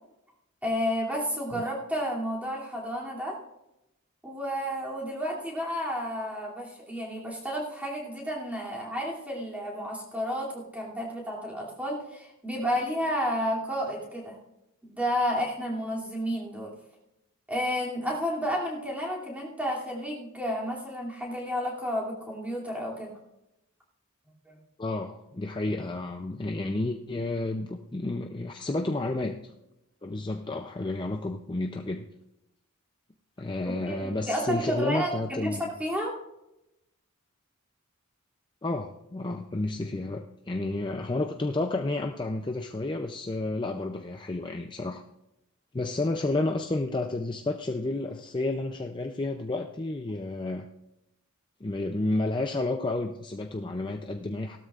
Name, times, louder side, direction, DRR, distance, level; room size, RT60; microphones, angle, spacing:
voice 1, 0.6-3.4 4.2-14.4 14.8-16.7 17.5-23.2 24.5-24.6 33.6-36.1, equal, 5° right, -4 dB, 2.7 m, -31 dB
voice 2, 24.8-29.5 30.0-32.0 33.4-35.7 38.6-45.0 45.7-50.7 51.6-54.6, left 2 dB, 20° left, 4 dB, 0.5 m, -31 dB
17.5 x 12.5 x 2.5 m, 0.90 s
head